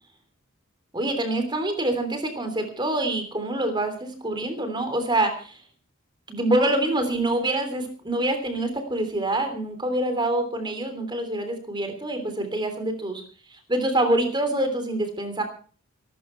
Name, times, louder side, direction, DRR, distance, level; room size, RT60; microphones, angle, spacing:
voice 1, 0.9-5.6 6.3-13.2 13.5-15.4, right 1 dB, 20° right, 7 dB, 3.2 m, -26 dB
21.0 x 12.5 x 4.5 m, 0.42 s
head